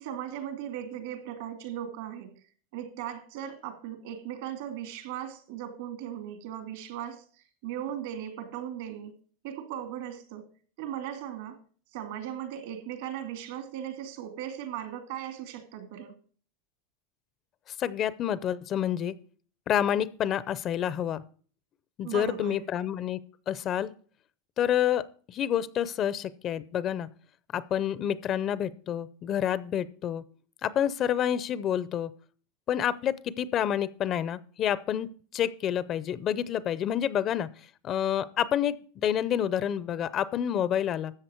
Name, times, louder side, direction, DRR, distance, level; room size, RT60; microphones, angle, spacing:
voice 1, 0.0-2.3 2.7-9.1 9.4-10.5 10.8-11.6 11.9-16.1 22.0-22.7, right 10 dB, 70° right, 2.6 m, -38 dB
voice 2, 17.8-19.1 19.7-21.2 22.0-23.2 23.5-23.9 24.6-25.0 25.3-27.1 27.5-30.2 30.6-32.1 32.7-37.5 37.8-41.1, left 10 dB, 35° left, 0.6 m, -28 dB
13.0 x 7.6 x 4.5 m
supercardioid pair, 140°, 0 cm